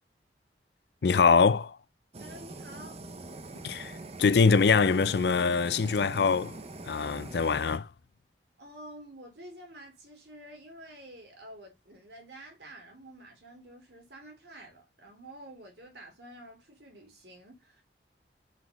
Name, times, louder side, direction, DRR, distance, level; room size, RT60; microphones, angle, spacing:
voice 1, 1.0-1.8 3.6-3.9 4.2-6.5 6.9-7.9, left 5 dB, 70° left, 0.4 m, -23 dB
Fire, 2.1-7.8, right 2 dB, 35° right, 0.8 m, -43 dB
voice 2, 2.2-3.0 8.6-17.8, right 1 dB, 70° right, 2.9 m, -49 dB
5.9 x 4.8 x 5.2 m
head